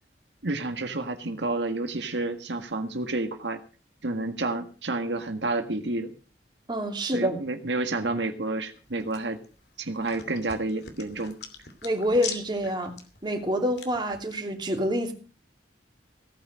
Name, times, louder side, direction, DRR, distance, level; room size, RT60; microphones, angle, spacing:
voice 1, 0.4-3.6 4.0-6.1 7.0-9.4 9.8-11.4, right 2 dB, 85° right, 6 dB, 1.7 m, -30 dB
voice 2, 6.7-7.4 11.8-12.9 13.2-15.1, equal, 25° right, 3 dB, 2.8 m, -27 dB
sound 1, 8.7-14.4, left 7 dB, 65° left, 2.7 m, -43 dB
17.0 x 9.3 x 6.4 m, 0.37 s
head